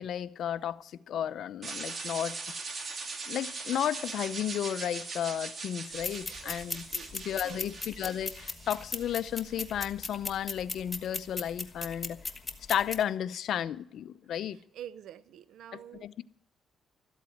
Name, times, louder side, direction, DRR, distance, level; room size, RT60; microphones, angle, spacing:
voice 1, 0.0-2.4 3.3-6.8 7.1-12.2 12.7-14.6 15.7-16.2, left 10 dB, 70° left, 0.6 m, -33 dB
sound 1, 1.6-9.6, right 4 dB, 45° right, 2.0 m, -41 dB
sound 2, 5.9-13.0, left 3 dB, 25° left, 1.3 m, -39 dB
voice 2, 14.5-16.1, right 10 dB, 75° right, 0.7 m, -47 dB
13.5 x 8.2 x 9.4 m
cardioid pair, 90°, 0 cm